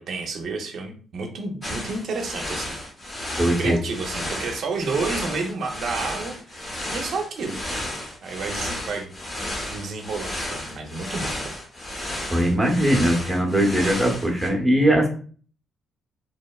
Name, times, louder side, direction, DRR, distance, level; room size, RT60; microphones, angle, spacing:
voice 1, 0.0-2.7 3.6-7.6 8.2-9.1 9.7-11.5, right 4 dB, 60° right, 4 dB, 0.5 m, -30 dB
sound 1, 1.6-14.5, left 1 dB, 25° left, 0.8 m, -33 dB
voice 2, 3.4-3.8 12.3-15.1, right 1 dB, 15° right, 0 dB, 0.8 m, -20 dB
2.8 x 2.0 x 2.2 m, 0.43 s
cardioid pair, 90°, 0 cm